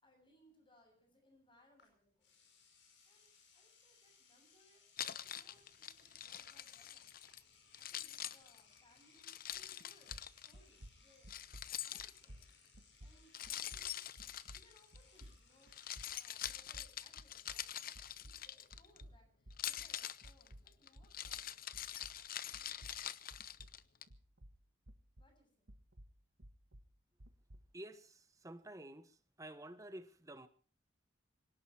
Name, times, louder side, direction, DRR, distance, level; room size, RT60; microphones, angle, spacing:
voice 1, 0.0-2.5 3.1-7.1 7.8-11.4 11.8-12.4 13.0-14.0 14.4-17.6 18.2-21.6 22.0-22.1 22.5-23.0 25.2-25.7, left 1 dB, 25° left, 7.4 m, -70 dB
Engine / Domestic sounds home sounds, 1.8-1.9 2.2-16.9, left 5 dB, 65° left, 5.6 m, -67 dB
Keys jangling, 5.0-7.4 7.7-10.5 11.3-12.5 13.3-15.2 15.6-19.0 19.5-24.0, left 11 dB, 50° left, 0.8 m, -45 dB
sound 1, 9.5-9.8 10.1-17.7 18.0-22.3 22.5-25.4 25.7-27.7, equal, 75° right, 1.7 m, -57 dB
voice 2, 27.7-30.5, right 1 dB, 15° right, 1.3 m, -51 dB
26.0 x 18.0 x 3.0 m
head